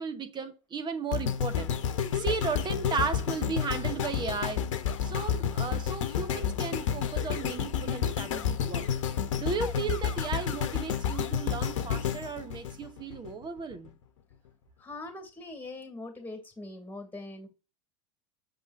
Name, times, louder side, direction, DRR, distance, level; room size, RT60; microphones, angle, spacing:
voice 1, 0.0-1.7 2.1-4.6 5.0-8.8 9.4-13.9, right 5 dB, 30° right, 1.2 m, -35 dB
sound 1, 1.1-13.3 13.9-14.0, left 8 dB, 70° left, 1.0 m, -30 dB
voice 2, 14.8-17.5, left 2 dB, 10° left, 2.7 m, -42 dB
6.9 x 5.3 x 2.6 m
hypercardioid pair, 85°, 16 cm